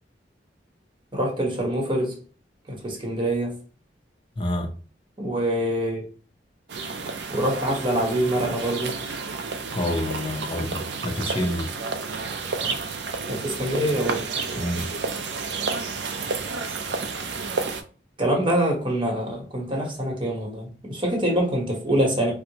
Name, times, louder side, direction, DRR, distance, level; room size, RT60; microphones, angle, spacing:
voice 1, 1.1-2.2 2.7-3.6 5.2-6.0 7.3-9.0 12.6-12.7 13.3-14.3 18.2-22.3, right 1 dB, 30° right, 0.9 m, -25 dB
voice 2, 4.4-4.7 9.7-11.7 14.5-14.9, left 1 dB, 30° left, 0.6 m, -28 dB
sound 1, 6.7-17.8, right 4 dB, 75° right, 0.4 m, -31 dB
4.3 x 2.0 x 2.8 m
head